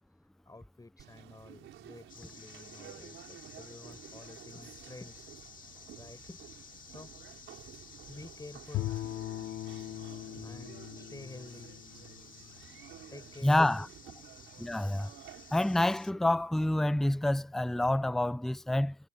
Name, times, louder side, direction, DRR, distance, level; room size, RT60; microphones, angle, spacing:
voice 1, 0.5-5.3 6.0-6.5 6.9-7.1 8.1-9.0 10.4-11.7 13.1-13.6, left 2 dB, 20° left, 6.1 m, -50 dB
Conversation, 1.0-15.8, right 12 dB, 75° right, 4.8 m, -52 dB
sound 1, 2.1-16.1, left 6 dB, 45° left, 2.8 m, -53 dB
Bowed string instrument, 8.7-13.0, left 15 dB, 75° left, 1.2 m, -40 dB
voice 2, 13.4-13.9 14.6-15.1 15.5-19.0, left 1 dB, ahead, 0.4 m, -27 dB
cardioid pair, 90°, 20 cm